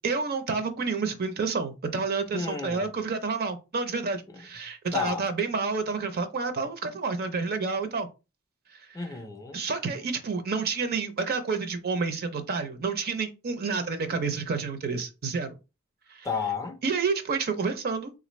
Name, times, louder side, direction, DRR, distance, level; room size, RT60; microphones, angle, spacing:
voice 1, 0.0-8.1 9.5-15.6 16.1-16.3 16.8-18.1, right 4 dB, 45° right, 0.5 m, -29 dB
voice 2, 2.3-2.9 4.3-4.4 4.9-5.2 8.9-9.6 16.2-16.8, left 5 dB, 15° left, 0.4 m, -32 dB
3.6 x 2.5 x 3.1 m
head